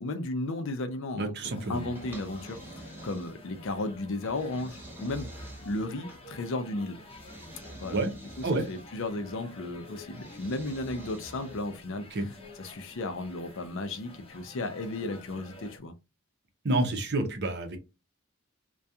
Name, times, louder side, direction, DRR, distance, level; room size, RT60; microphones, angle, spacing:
voice 1, 0.0-1.4 1.7-7.0 7.8-8.0 8.4-12.1 12.6-15.9, left 2 dB, 65° left, 0.5 m, -34 dB
voice 2, 1.2-1.9 7.9-8.1 8.4-8.7 12.1-12.3 16.6-17.8, right 2 dB, 50° right, 0.6 m, -28 dB
sound 1, 1.4-15.8, left 1 dB, 25° left, 0.7 m, -49 dB
sound 2, 2.0-3.6 4.2-6.2 7.1-9.0 10.1-11.7, right 1 dB, 10° right, 0.6 m, -47 dB
2.3 x 2.2 x 2.7 m
head